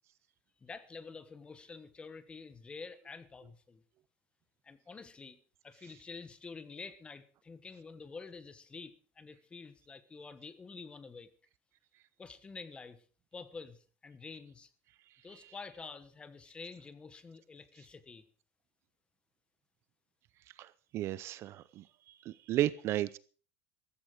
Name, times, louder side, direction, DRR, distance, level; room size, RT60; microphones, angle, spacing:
voice 1, 0.6-3.8 4.6-5.4 5.6-11.3 12.2-13.0 13.3-14.7 15.2-18.3, left 4 dB, 15° left, 1.2 m, -48 dB
voice 2, 20.6-23.2, right 13 dB, 40° right, 0.6 m, -34 dB
14.5 x 14.5 x 4.9 m
cardioid pair, 155°, 7 cm